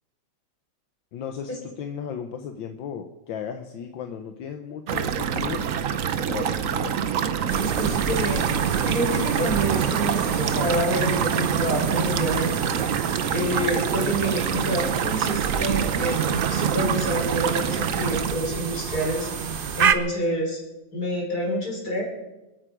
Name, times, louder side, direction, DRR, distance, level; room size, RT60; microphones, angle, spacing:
voice 1, 1.1-5.7 6.3-7.1, left 7 dB, 80° left, 5 dB, 1.6 m, -35 dB
sound 1, 4.9-18.3, right 8 dB, 60° right, 1.0 m, -26 dB
sound 2, 7.5-19.9, right 6 dB, 90° right, 0.4 m, -28 dB
voice 2, 7.6-8.5 8.8-12.5 13.3-19.3 19.8-20.6 20.9-22.0, equal, 50° left, -2 dB, 5.4 m, -28 dB
27.5 x 9.2 x 5.1 m, 1.0 s
omnidirectional pair, 2.0 m